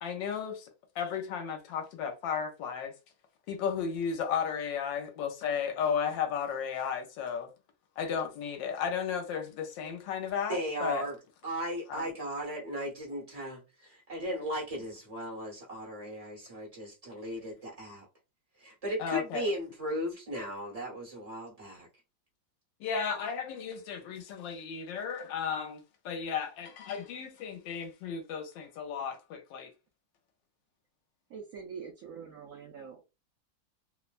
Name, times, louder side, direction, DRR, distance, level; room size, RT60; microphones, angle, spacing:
voice 1, 0.0-0.7 1.0-2.9 3.5-7.5 8.0-11.1 11.9-12.1 19.0-19.5 22.8-29.7, left 7 dB, 75° left, 1.3 m, -34 dB
voice 2, 10.5-11.2 11.4-18.1 18.6-21.9, equal, 25° right, 1.0 m, -36 dB
voice 3, 31.3-33.1, right 6 dB, 85° right, 0.7 m, -44 dB
3.2 x 2.1 x 2.4 m
omnidirectional pair, 2.1 m